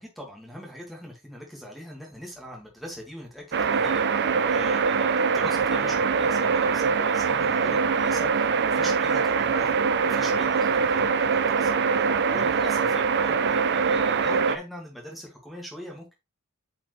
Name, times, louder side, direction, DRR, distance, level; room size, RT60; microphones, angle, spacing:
voice 1, 0.0-16.1, equal, ahead, -2 dB, 2.0 m, -42 dB
sound 1, 3.5-14.6, right 5 dB, 50° right, 0.6 m, -23 dB
8.4 x 4.7 x 3.2 m, 0.23 s
head